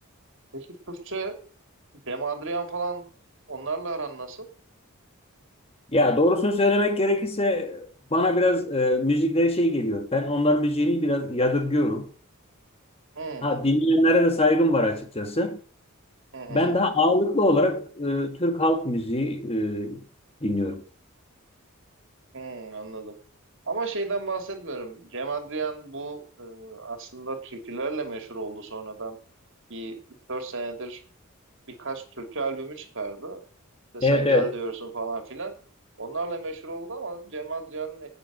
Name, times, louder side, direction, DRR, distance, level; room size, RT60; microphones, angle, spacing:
voice 1, 0.5-1.4 2.1-3.0 3.5-4.5 13.1-13.6 16.3-16.8 22.3-23.1 23.7-29.2 29.7-30.0 30.3-31.0 31.8-33.4 33.9-35.5 36.0-38.1, right 3 dB, 60° right, 2.9 m, -33 dB
voice 2, 5.9-12.1 13.4-15.6 16.5-20.0 20.4-20.8 34.0-34.5, left 1 dB, 30° left, 1.7 m, -23 dB
11.5 x 8.9 x 7.7 m
head